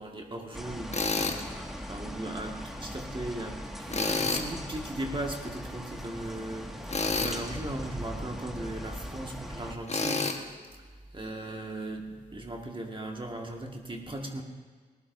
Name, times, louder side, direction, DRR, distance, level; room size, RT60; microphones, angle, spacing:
voice 1, 0.0-10.3 11.1-14.4, right 1 dB, 30° right, 1 dB, 1.8 m, -38 dB
sound 1, 0.5-9.7, equal, ahead, 2.0 m, -40 dB
Tools, 0.9-1.4 3.9-4.5 6.9-7.4 9.9-10.4, left 3 dB, 40° left, 1.4 m, -29 dB
19.0 x 15.0 x 2.7 m, 1.5 s
supercardioid pair, 40°, 17 cm